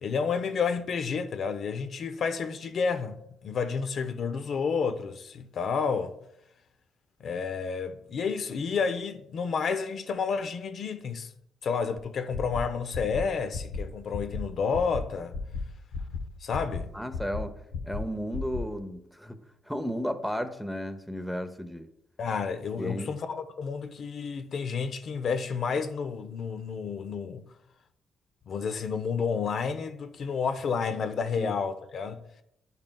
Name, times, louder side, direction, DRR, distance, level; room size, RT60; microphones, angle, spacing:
voice 1, 0.0-6.1 7.2-11.3 11.6-15.3 16.4-16.9 22.2-27.5 28.5-32.2, left 5 dB, 55° left, 0.6 m, -30 dB
sound 1, 12.0-12.1 12.3-12.6 12.9-13.2 13.5-13.8 14.1-14.4 14.7-15.0 15.3-15.6 15.9-16.2 16.5-16.8 17.1-17.4 17.7-18.0 18.3-18.6, left 5 dB, 85° left, 1.1 m, -34 dB
voice 2, 16.9-17.5 17.8-19.4 19.7-21.9 22.8-23.2 31.4-31.5, equal, ahead, 0.7 m, -33 dB
10.5 x 5.4 x 2.3 m
cardioid pair, 90°, 0 cm